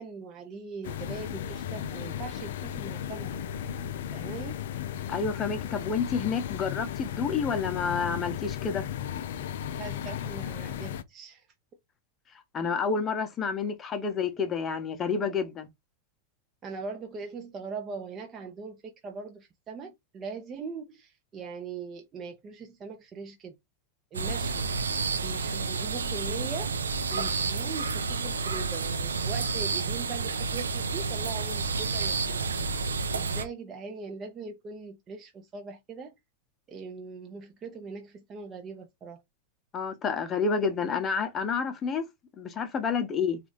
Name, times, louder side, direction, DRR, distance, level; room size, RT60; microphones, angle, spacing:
voice 1, 0.0-3.3 4.1-4.6 9.8-11.5 16.6-23.6 24.1-24.8 25.2-32.4 33.1-36.1 36.7-39.2, right 4 dB, 25° right, 0.6 m, -41 dB
sound 1, 0.8-11.0, left 9 dB, 55° left, 0.4 m, -35 dB
voice 2, 5.1-8.8 12.5-15.7 39.7-42.0 42.4-43.4, left 5 dB, 25° left, 0.8 m, -29 dB
sound 2, 24.1-33.4, right 4 dB, 70° right, 0.5 m, -30 dB
3.9 x 2.5 x 3.1 m
figure-of-eight pair, 90°, 0 cm